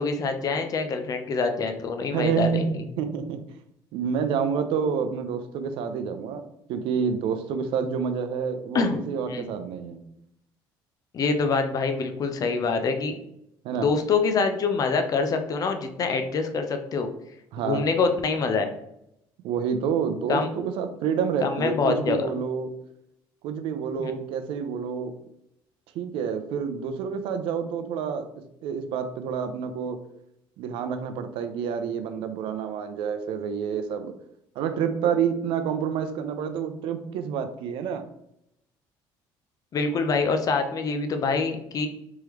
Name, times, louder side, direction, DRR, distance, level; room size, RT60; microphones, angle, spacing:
voice 1, 0.0-2.6 8.7-9.5 11.1-13.2 13.8-17.1 17.6-18.7 20.3-20.5 21.4-22.3 24.0-24.2 39.7-41.9, left 4 dB, 40° left, 6 dB, 0.6 m, -25 dB
voice 2, 2.1-3.4 3.9-10.0 13.6-13.9 17.5-17.8 19.4-22.7 23.4-25.2 25.9-28.3 28.6-30.0 30.6-34.1 34.6-38.0, right 7 dB, 75° right, 8 dB, 0.5 m, -28 dB
3.6 x 3.2 x 3.1 m, 0.78 s
cardioid pair, 105°, 9 cm